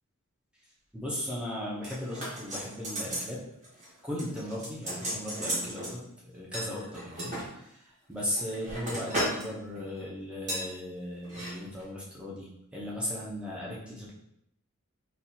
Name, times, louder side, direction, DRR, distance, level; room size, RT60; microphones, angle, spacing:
voice 1, 0.9-3.4 4.0-7.7 8.1-14.1, left 1 dB, 5° right, -6 dB, 0.6 m, -37 dB
sound 1, 1.8-3.3 3.6-3.9 4.2-5.9 6.5-7.5 8.1-9.5 9.7-10.0 10.5-10.7 11.2-11.5 11.8-11.9, right 1 dB, 35° right, 1.3 m, -35 dB
4.2 x 2.4 x 2.7 m, 0.76 s
head